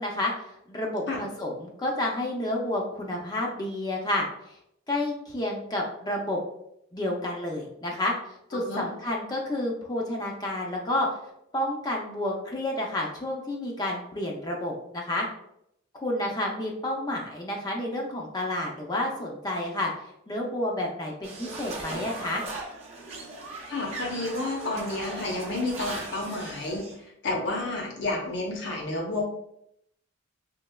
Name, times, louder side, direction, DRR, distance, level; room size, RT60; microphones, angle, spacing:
voice 1, 0.0-4.3 4.9-6.4 6.9-11.1 11.5-15.3 15.9-19.9 20.3-22.4, left 1 dB, 20° left, -1 dB, 0.4 m, -30 dB
voice 2, 8.5-8.9 23.7-26.8 27.2-29.2, left 2 dB, 60° left, 0 dB, 0.7 m, -30 dB
sound 1, 21.2-27.0, right 2 dB, 35° right, 0.6 m, -38 dB
3.1 x 2.8 x 2.2 m, 0.76 s
head